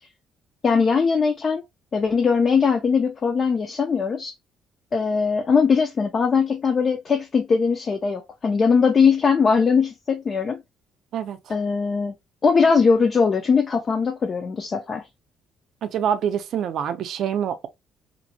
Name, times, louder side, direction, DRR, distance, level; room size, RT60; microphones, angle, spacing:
voice 1, 0.6-1.6 1.9-4.3 4.9-10.6 11.5-12.1 12.4-15.1, left 5 dB, 35° left, 0.3 m, -20 dB
voice 2, 15.8-17.7, right 8 dB, 60° right, 0.4 m, -25 dB
2.5 x 2.0 x 2.6 m
cardioid pair, 135°, 0 cm